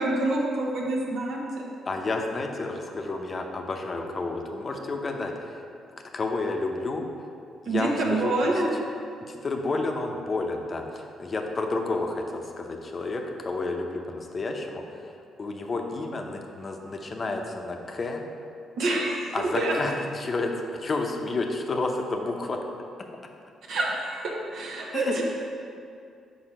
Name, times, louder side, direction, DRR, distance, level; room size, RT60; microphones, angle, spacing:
voice 1, 0.0-1.7 7.7-8.7 18.8-19.8 23.7-25.2, right 2 dB, 70° right, -1 dB, 1.0 m, -27 dB
voice 2, 1.9-5.7 6.1-7.0 7.6-8.3 9.3-15.1 15.4-18.2 19.3-22.6 24.9-25.2, left 3 dB, 35° left, 3 dB, 0.6 m, -30 dB
4.8 x 4.4 x 4.9 m, 2.4 s
cardioid pair, 90°, 0 cm